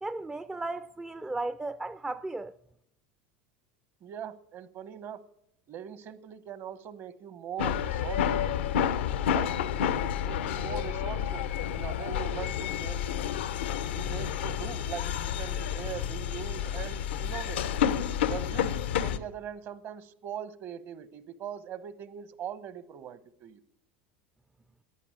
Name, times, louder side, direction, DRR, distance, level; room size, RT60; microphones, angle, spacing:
voice 1, 0.0-2.5, right 2 dB, 10° right, 0.4 m, -35 dB
voice 2, 4.0-5.2 5.7-8.6 9.3-13.0 13.9-17.7 18.3-23.6, right 9 dB, 45° right, 1.0 m, -41 dB
sound 1, 7.6-19.2, left 9 dB, 85° left, 0.7 m, -30 dB
11.0 x 10.0 x 9.1 m
supercardioid pair, 105°, 6 cm